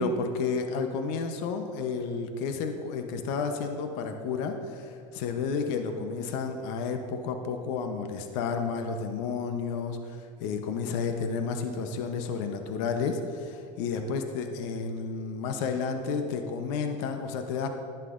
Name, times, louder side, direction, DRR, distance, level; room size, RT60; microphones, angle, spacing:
voice 1, 0.0-17.7, left 5 dB, 60° left, 6 dB, 0.8 m, -31 dB
11.0 x 9.0 x 2.5 m, 2.5 s
supercardioid pair, 125°, 18 cm